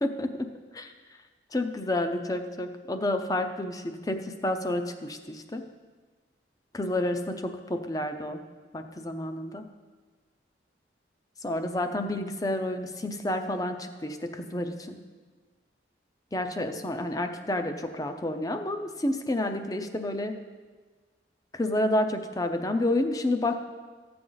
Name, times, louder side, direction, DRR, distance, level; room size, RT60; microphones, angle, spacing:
voice 1, 1.5-5.6 6.7-8.4 8.7-9.6 11.4-15.0 16.3-20.3 21.5-23.6, left 1 dB, 20° left, 7 dB, 0.6 m, -29 dB
14.0 x 7.7 x 3.9 m, 1.4 s
head